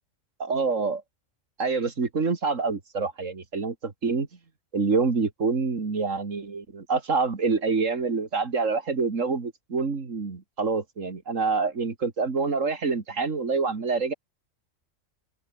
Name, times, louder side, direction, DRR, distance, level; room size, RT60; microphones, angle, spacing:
voice 1, 0.4-1.0 1.6-4.3 4.7-14.1, right 4 dB, 75° right, 2.7 m, -26 dB
omnidirectional pair, 1.3 m